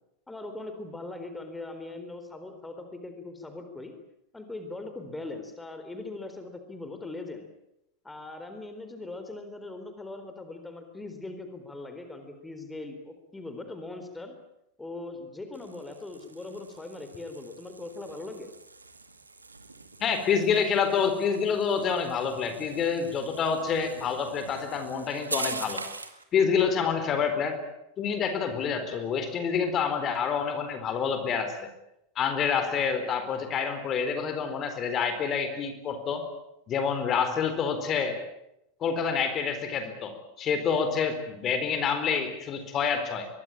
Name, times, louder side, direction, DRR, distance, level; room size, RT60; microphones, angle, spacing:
voice 1, 0.3-3.9 4.3-7.5 8.0-14.3 14.8-18.5, left 2 dB, 10° left, 7 dB, 4.1 m, -40 dB
sound 1, 15.5-26.2, right 3 dB, 80° right, 2.1 m, -42 dB
voice 2, 20.0-25.8 26.3-27.6 28.0-31.7 32.2-36.2 36.7-38.2 38.8-43.3, left 6 dB, 30° left, 8 dB, 4.1 m, -27 dB
24.0 x 23.0 x 8.8 m, 0.83 s
figure-of-eight pair, 85°, 0 cm